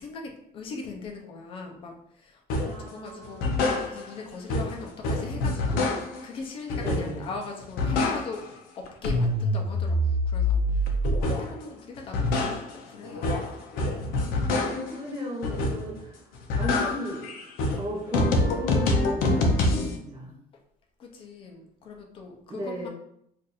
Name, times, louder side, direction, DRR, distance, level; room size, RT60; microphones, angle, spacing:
voice 1, 0.0-8.4 8.8-13.3 14.2-14.6 20.5-20.6 21.0-22.9, left 4 dB, 35° left, 2 dB, 0.6 m, -41 dB
sound 1, 2.5-2.8 3.2-4.2 4.5-6.3 6.7-7.3 7.6-8.6 8.9-11.6 12.0-15.0 15.4-16.0 16.3-19.9, left 2 dB, 80° left, 0.6 m, -26 dB
voice 2, 2.7-3.8 6.8-7.3 14.6-16.2 16.6-17.3 17.8-20.4 22.5-22.9, equal, 25° right, -3 dB, 0.8 m, -36 dB
2.5 x 2.5 x 4.0 m, 0.72 s
cardioid pair, 175°, 15 cm